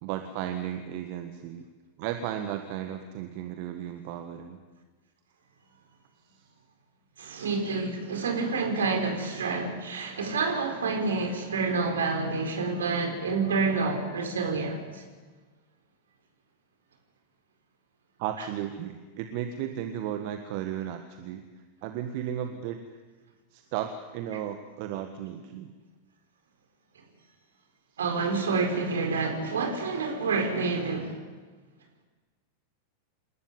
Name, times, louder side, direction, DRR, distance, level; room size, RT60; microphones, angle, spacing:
voice 1, 0.0-1.6 2.0-4.6 18.2-21.4 21.8-22.8 23.5-25.7, right 10 dB, 45° right, 1.6 m, -34 dB
voice 2, 7.2-15.0 28.0-31.2, right 4 dB, 65° right, 4.6 m, -28 dB
28.0 x 13.0 x 9.7 m
figure-of-eight pair, 90°, 0 cm